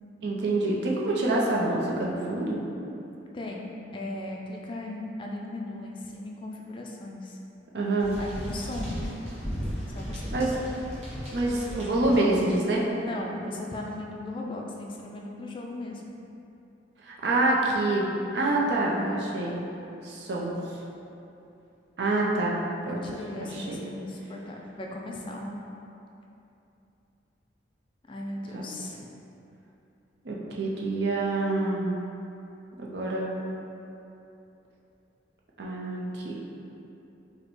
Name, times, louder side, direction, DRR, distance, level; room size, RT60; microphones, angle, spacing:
voice 1, 0.2-2.6 7.7-8.1 10.3-10.5 11.3-12.8 17.0-18.1 18.3-19.6 20.0-20.6 22.0-22.6 22.9-23.0 23.4-23.8 28.5-28.6 30.2-32.0 32.8-33.3 35.6-36.4, right 2 dB, 65° right, -3 dB, 0.5 m, -26 dB
voice 2, 3.3-7.4 8.2-9.0 9.9-10.5 12.9-16.0 18.5-19.3 22.9-25.6 28.1-29.1, left 1 dB, 25° left, -1 dB, 0.3 m, -37 dB
sound 1, 8.0-12.5, equal, 35° right, 0.9 m, -36 dB
5.0 x 2.1 x 3.0 m, 2.8 s
head